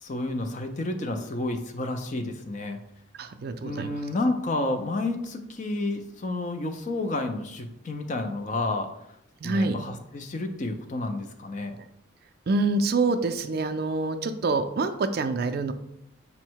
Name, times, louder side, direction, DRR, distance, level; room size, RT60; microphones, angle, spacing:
voice 1, 0.0-2.8 3.6-8.9 9.4-11.8, left 2 dB, 35° left, 6 dB, 0.4 m, -30 dB
voice 2, 3.2-4.0 9.4-9.8 11.8-11.9 12.5-15.7, right 3 dB, 50° right, 8 dB, 0.3 m, -26 dB
5.3 x 2.1 x 4.5 m, 0.78 s
head